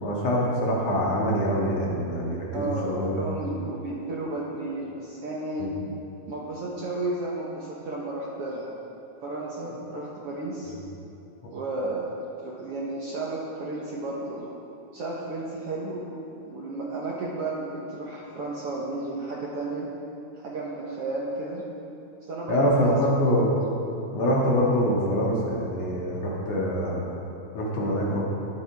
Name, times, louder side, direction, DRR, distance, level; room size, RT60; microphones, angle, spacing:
voice 1, 0.0-3.1 5.6-5.7 22.5-23.7 24.1-27.0 27.5-28.2, equal, 55° left, -4 dB, 2.6 m, -24 dB
voice 2, 2.5-5.7 6.2-8.7 9.2-10.7 11.5-12.1 12.4-14.5 14.9-16.1 16.4-19.9 20.4-21.6 22.3-22.9, right 2 dB, 60° right, -4 dB, 1.7 m, -33 dB
20.5 x 8.3 x 3.6 m, 2.8 s
omnidirectional pair, 3.8 m